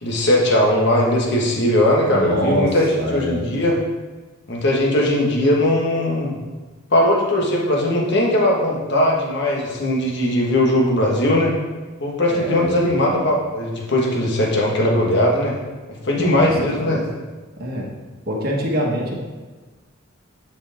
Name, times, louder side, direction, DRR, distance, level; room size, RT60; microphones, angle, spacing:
voice 1, 0.0-3.8 4.5-6.4 6.9-11.5 12.0-15.6 16.0-17.0, left 1 dB, 55° left, -2 dB, 1.5 m, -19 dB
voice 2, 2.1-2.7 3.0-3.4 12.4-13.2 16.1-17.0 17.6-17.9 18.2-19.1, equal, 45° right, -3 dB, 1.5 m, -25 dB
11.0 x 5.2 x 3.6 m, 1.3 s
head